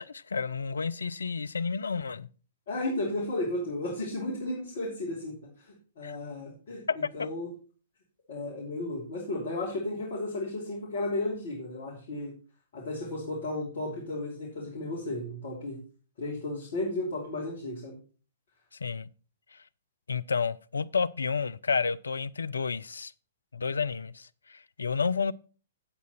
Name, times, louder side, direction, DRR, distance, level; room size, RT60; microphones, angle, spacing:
voice 1, 0.0-2.3 6.0-6.1 6.9-7.3 18.8-19.1 20.1-23.1 23.5-25.3, left 5 dB, 70° left, 0.4 m, -30 dB
voice 2, 2.7-7.5 8.3-12.3 12.7-15.8 16.2-18.0, left 2 dB, 50° left, 3.0 m, -34 dB
8.8 x 8.0 x 4.3 m
figure-of-eight pair, 115°, 0 cm